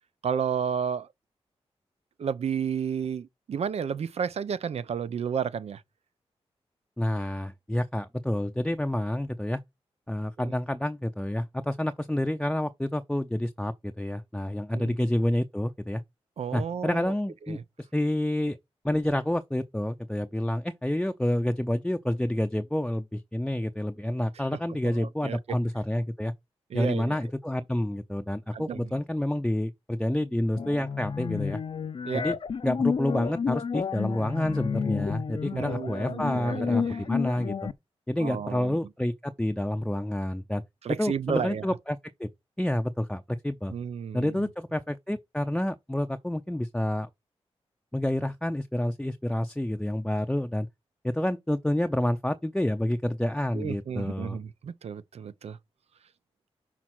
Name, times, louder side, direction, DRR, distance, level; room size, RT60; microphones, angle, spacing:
voice 1, 0.2-1.1 2.2-5.8 10.4-10.5 14.7-14.9 16.4-17.1 17.5-17.6 24.8-25.4 26.7-27.2 28.5-28.9 32.0-32.3 35.5-37.0 38.2-38.8 40.8-41.6 43.7-44.3 53.5-55.6, right 7 dB, 75° right, 0.7 m, -32 dB
voice 2, 7.0-9.6 10.1-16.0 16.5-18.6 18.8-26.3 26.7-31.6 32.1-32.4 32.6-37.7 38.1-40.6 40.9-42.3 42.6-43.7 44.1-47.1 47.9-50.7 51.0-54.4, left 1 dB, 5° left, 0.6 m, -29 dB
sound 1, 30.5-37.7, left 6 dB, 50° left, 0.6 m, -31 dB
6.1 x 4.1 x 6.0 m
cardioid pair, 70°, 11 cm